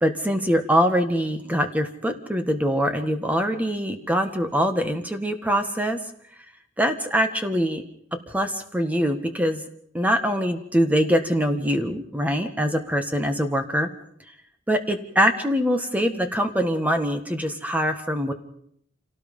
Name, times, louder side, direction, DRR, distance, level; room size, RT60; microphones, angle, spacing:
voice 1, 0.0-6.0 6.8-7.8 8.3-9.6 9.9-13.9 14.7-18.3, equal, 10° right, 7 dB, 1.7 m, -23 dB
28.5 x 18.0 x 5.5 m, 0.69 s
head